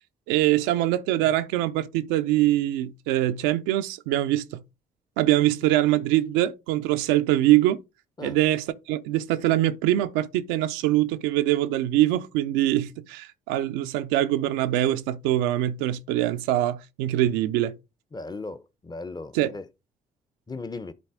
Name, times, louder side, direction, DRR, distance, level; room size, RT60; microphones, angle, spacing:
voice 1, 0.3-4.6 5.2-7.8 8.2-17.8 19.3-19.5, right 14 dB, 75° right, 0.6 m, -23 dB
voice 2, 18.1-19.7 20.5-20.9, left 3 dB, 20° left, 0.9 m, -37 dB
11.0 x 4.0 x 3.7 m
hypercardioid pair, 45°, 20 cm